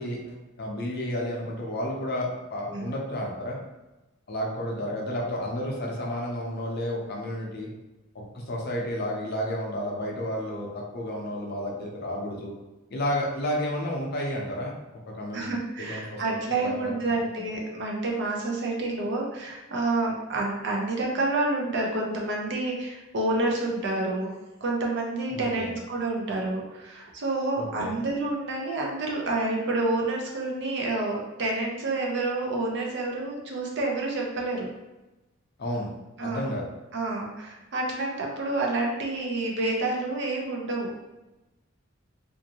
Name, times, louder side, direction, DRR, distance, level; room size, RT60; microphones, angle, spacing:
voice 1, 0.0-3.6 4.3-7.7 8.1-12.5 12.9-14.7 15.1-15.5 15.8-16.9 25.3-25.7 27.6-28.0 35.6-35.9 36.2-36.6, left 1 dB, 50° left, -1 dB, 0.6 m, -31 dB
voice 2, 15.3-24.3 24.6-34.7 36.2-36.5 36.9-40.9, right 2 dB, 55° right, -1 dB, 0.6 m, -28 dB
2.5 x 2.5 x 2.8 m, 1.0 s
head